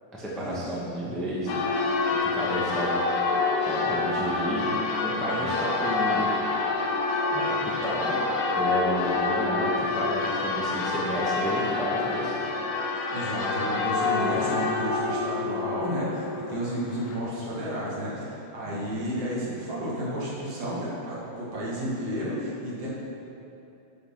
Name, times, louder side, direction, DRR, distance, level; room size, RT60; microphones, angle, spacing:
voice 1, 0.1-1.6 2.2-3.0 3.6-6.3 7.3-7.6 7.8-8.2 8.5-12.4 18.6-18.8, equal, ahead, -7 dB, 0.7 m, -31 dB
Church bell, 1.5-17.2, left 3 dB, 90° left, 2.6 m, -27 dB
voice 2, 12.9-22.9, equal, 50° right, -7 dB, 3.0 m, -32 dB
12.0 x 5.8 x 5.9 m, 2.8 s
omnidirectional pair, 3.7 m